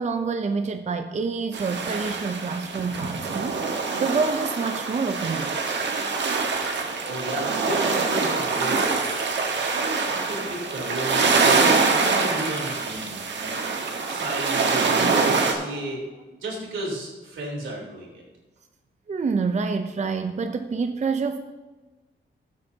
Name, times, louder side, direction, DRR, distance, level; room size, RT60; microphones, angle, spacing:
voice 1, 0.0-3.6 4.0-5.6 19.1-21.4, right 4 dB, 35° right, 7 dB, 0.5 m, -27 dB
sound 1, 1.5-15.5, right 4 dB, 65° right, 1.3 m, -24 dB
voice 2, 7.0-9.0 9.5-11.8 12.1-13.6 14.1-16.0 16.4-18.2, right 1 dB, 85° right, -2 dB, 3.3 m, -33 dB
14.5 x 8.2 x 2.8 m, 1.2 s
wide cardioid pair, 105°, 20 cm